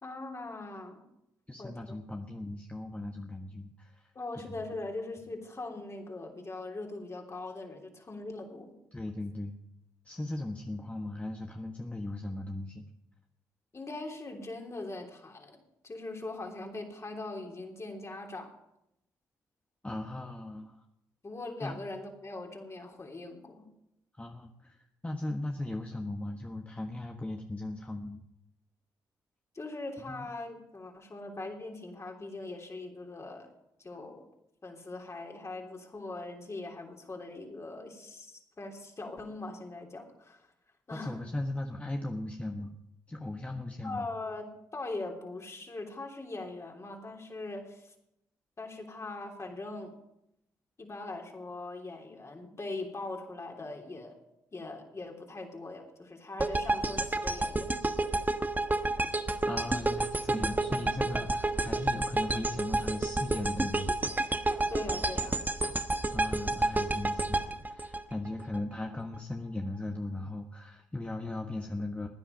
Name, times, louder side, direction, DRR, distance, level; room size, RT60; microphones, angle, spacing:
voice 1, 0.0-1.1 1.6-2.0 4.1-8.7 13.7-18.5 21.2-23.7 29.5-33.5 33.8-34.3 34.6-40.5 40.9-41.2 43.8-47.9 48.6-49.9 50.8-54.2 54.5-57.8 64.7-65.4, left 2 dB, 35° left, 1 dB, 3.2 m, -41 dB
voice 2, 1.5-4.1 4.5-4.6 8.9-9.6 10.0-12.9 19.8-20.8 21.6-21.8 24.2-28.2 30.1-30.3 40.9-42.8 43.1-44.1 59.5-63.9 66.1-67.4 67.7-72.1, left 2 dB, 15° left, 3 dB, 1.3 m, -38 dB
sound 1, 56.4-68.6, right 2 dB, 20° right, 1.2 m, -30 dB
16.0 x 10.0 x 5.3 m, 0.82 s
hypercardioid pair, 45°, 8 cm